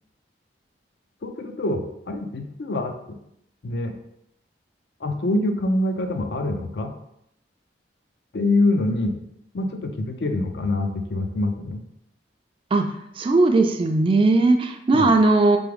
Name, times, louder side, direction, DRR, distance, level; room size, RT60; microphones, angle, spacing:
voice 1, 1.2-2.9 3.6-3.9 5.0-6.9 8.3-9.2 9.5-11.8 14.9-15.1, left 2 dB, 70° left, 6 dB, 0.5 m, -25 dB
voice 2, 13.2-15.6, right 2 dB, 30° right, 5 dB, 0.3 m, -18 dB
3.5 x 3.4 x 3.5 m, 0.76 s
head